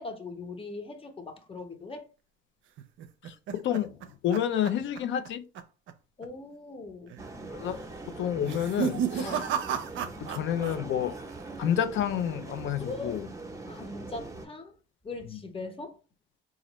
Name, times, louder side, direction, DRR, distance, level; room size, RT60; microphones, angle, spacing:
voice 1, 0.0-2.0 6.2-7.1 9.2-9.5 10.0-10.1 12.8-13.2 13.7-14.7 15.0-15.9, left 3 dB, 30° left, 0.9 m, -40 dB
sound 1, 2.8-5.3 5.6-5.9 6.2-6.3 7.1-7.5 8.3-10.8 11.0-11.6, right 8 dB, 75° right, 0.5 m, -33 dB
voice 2, 3.2-5.4 7.5-7.8 8.1-9.4 10.2-11.1 11.6-13.3 15.3-15.4, left 10 dB, 75° left, 0.5 m, -29 dB
sound 2, 7.2-14.5, right 2 dB, 15° right, 0.7 m, -42 dB
4.0 x 2.5 x 3.0 m
cardioid pair, 90°, 20 cm